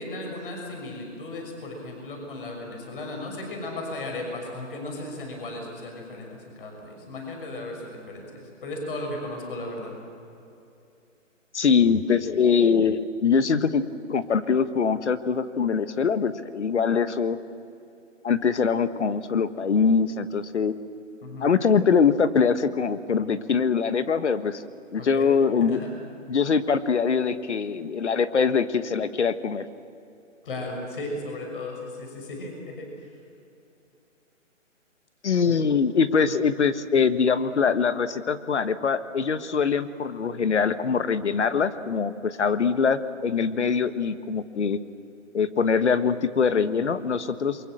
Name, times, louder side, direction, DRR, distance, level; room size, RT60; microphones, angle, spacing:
voice 1, 0.0-9.9 21.2-21.5 25.0-25.3 25.6-25.9 30.4-33.2 35.4-35.6 36.3-36.4, left 2 dB, 45° left, 2 dB, 6.1 m, -36 dB
voice 2, 11.5-13.8 14.1-17.4 18.2-20.8 21.4-24.6 24.9-25.8 26.3-29.7 35.2-44.8 45.3-47.6, left 6 dB, 60° left, 12 dB, 1.4 m, -23 dB
28.5 x 23.5 x 7.7 m, 2.7 s
hypercardioid pair, 160°, 38 cm